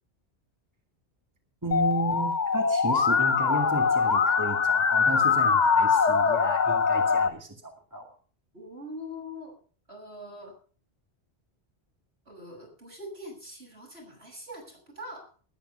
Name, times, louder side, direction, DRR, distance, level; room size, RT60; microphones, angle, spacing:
voice 1, 1.6-8.1, right 2 dB, 15° right, 2 dB, 2.2 m, -34 dB
Musical instrument, 1.7-7.3, left 5 dB, 45° left, 1.0 m, -23 dB
voice 2, 8.5-9.6 9.9-10.6 12.3-15.3, left 1 dB, 70° right, -2 dB, 7.7 m, -43 dB
20.0 x 9.1 x 5.5 m, 0.42 s
omnidirectional pair, 1.1 m